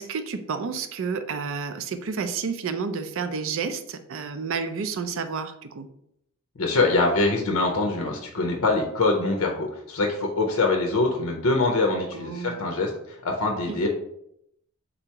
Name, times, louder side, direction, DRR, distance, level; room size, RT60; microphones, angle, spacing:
voice 1, 0.0-5.9 12.1-12.8 13.7-13.9, right 5 dB, 65° right, 9 dB, 0.4 m, -30 dB
voice 2, 6.6-13.9, left 3 dB, 80° left, 2 dB, 0.6 m, -24 dB
3.9 x 2.8 x 4.5 m, 0.75 s
head